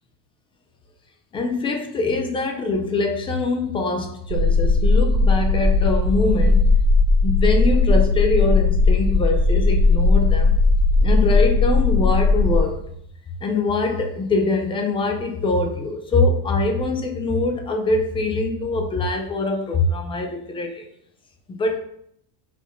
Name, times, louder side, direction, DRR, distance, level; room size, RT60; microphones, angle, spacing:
voice 1, 1.3-6.6 7.2-10.6 11.0-12.8 13.4-20.8 21.5-21.8, left 3 dB, 15° left, 4 dB, 0.3 m, -23 dB
sound 1, 4.3-12.6, left 3 dB, 40° right, 0.9 m, -17 dB
6.7 x 5.0 x 5.7 m, 0.70 s
cardioid pair, 170°, 50 cm